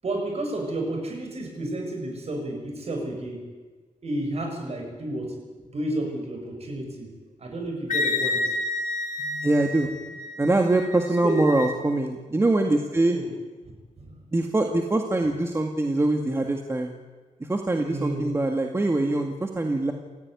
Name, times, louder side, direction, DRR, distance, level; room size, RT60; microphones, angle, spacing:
voice 1, 0.0-3.4 4.0-5.3 5.7-7.1 7.4-8.5 9.2-9.6 11.2-11.4 13.1-13.3 14.0-14.1 17.8-18.4, right 1 dB, 50° right, 2 dB, 7.8 m, -31 dB
Wind instrument woodwind instrument, 7.9-11.7, left 2 dB, 90° left, 2.3 m, -30 dB
voice 2, 9.4-9.9 10.4-13.2 14.3-16.9 17.4-19.9, right 2 dB, 20° right, 3 dB, 2.0 m, -23 dB
28.5 x 15.5 x 9.8 m, 1.3 s
wide cardioid pair, 140°, 13 cm